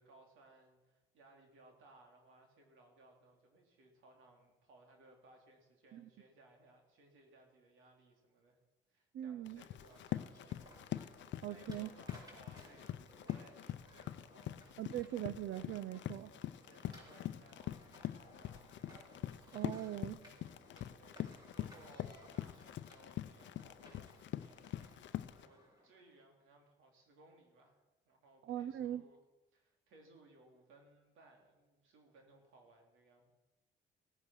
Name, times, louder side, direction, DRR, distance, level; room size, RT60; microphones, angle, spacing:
voice 1, 0.0-8.6 8.9-10.7 11.2-15.0 16.7-18.7 21.0-29.2 29.5-33.3, right 2 dB, 85° right, 2 dB, 3.3 m, -64 dB
voice 2, 9.1-9.6 11.4-11.9 14.8-16.3 19.5-20.2 28.4-29.0, right 12 dB, 70° right, 14 dB, 0.5 m, -41 dB
Run, 9.5-25.5, left 12 dB, 70° left, 0.6 m, -44 dB
sound 1, 9.8-26.2, right 1 dB, 20° right, 5.1 m, -61 dB
17.0 x 9.8 x 6.2 m, 1.1 s
cardioid pair, 90°, 20 cm